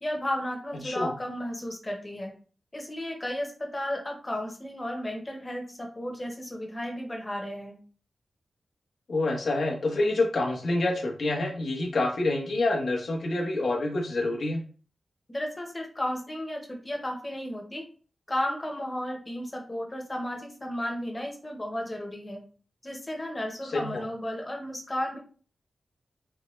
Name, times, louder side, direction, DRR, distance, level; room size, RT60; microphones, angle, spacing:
voice 1, 0.0-2.3 2.7-7.8 15.3-17.8 18.3-22.4 22.8-25.2, left 1 dB, 20° left, 2 dB, 0.9 m, -33 dB
voice 2, 0.8-1.1 9.1-14.6 23.6-24.1, left 2 dB, 75° left, -1 dB, 0.9 m, -27 dB
4.3 x 2.1 x 3.1 m, 0.40 s
wide cardioid pair, 125°, 0 cm